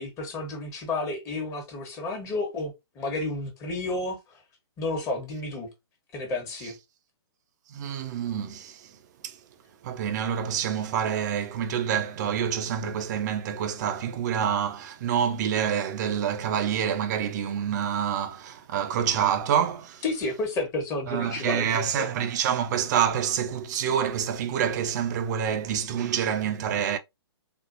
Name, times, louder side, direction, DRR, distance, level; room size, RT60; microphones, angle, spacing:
voice 1, 0.0-4.4 4.8-5.7 6.1-6.8 20.0-22.1, left 2 dB, 20° left, 1.2 m, -31 dB
voice 2, 7.7-8.9 9.2-9.4 9.8-20.0 21.1-27.0, right 8 dB, 40° right, 0.6 m, -27 dB
4.3 x 2.4 x 2.6 m
figure-of-eight pair, 130°, 14 cm